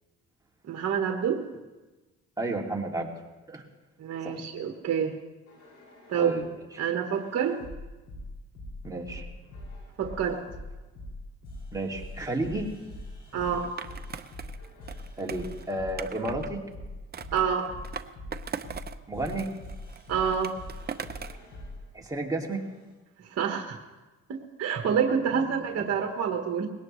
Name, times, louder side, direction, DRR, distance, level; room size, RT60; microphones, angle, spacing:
voice 1, 0.7-1.4 4.0-5.1 6.1-6.3 6.8-7.6 10.0-10.4 13.3-13.7 17.3-17.7 20.1-20.5 23.3-23.8 24.3-26.7, right 7 dB, 55° right, 3 dB, 1.5 m, -27 dB
voice 2, 2.4-3.1 3.5-3.6 4.2-4.4 6.2-6.5 8.8-9.3 11.7-12.7 15.2-16.6 19.1-19.5 21.9-22.6 25.3-25.5 25.8-25.9, right 2 dB, 10° right, -1 dB, 2.5 m, -32 dB
sound 1, 5.5-6.5 7.1-21.8 22.5-22.9, left 1 dB, 70° left, 6.1 m, -43 dB
Skateboard, 13.8-16.5 17.1-19.0 19.2-21.5, right 6 dB, 35° right, 0.7 m, -40 dB
20.5 x 17.5 x 3.2 m, 1.2 s
cardioid pair, 90°, 30 cm